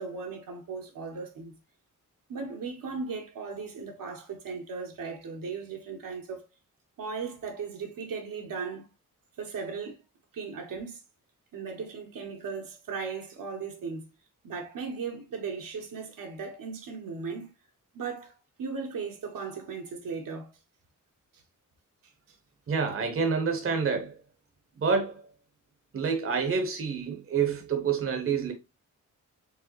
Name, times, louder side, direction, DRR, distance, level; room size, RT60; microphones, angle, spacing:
voice 1, 0.0-1.5 2.3-6.4 7.0-8.9 9.4-10.0 10.3-11.0 11.5-14.0 14.4-17.5 17.9-18.3 18.6-20.5, right 5 dB, 80° right, 1.3 m, -37 dB
voice 2, 22.7-24.2 24.8-25.2 25.9-28.5, right 5 dB, 40° right, 0.9 m, -28 dB
4.6 x 3.6 x 3.0 m
wide cardioid pair, 140°, 33 cm